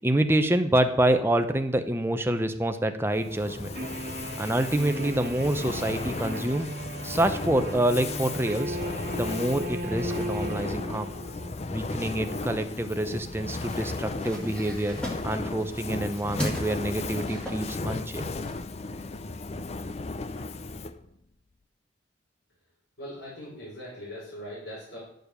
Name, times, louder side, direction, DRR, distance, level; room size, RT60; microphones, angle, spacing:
voice 1, 0.0-3.7 4.4-6.7 7.0-8.8 9.1-11.1 11.7-15.0 15.2-18.2, right 1 dB, 15° right, 7 dB, 0.8 m, -27 dB
Fire, 3.1-21.1, left 3 dB, 35° left, 0.5 m, -35 dB
sound 1, 3.7-11.5, right 1 dB, 55° right, 1.1 m, -36 dB
sound 2, 13.5-18.6, equal, 5° left, 2.1 m, -38 dB
voice 2, 23.0-25.0, equal, 75° left, -7 dB, 5.1 m, -40 dB
10.5 x 7.2 x 6.7 m, 0.72 s
head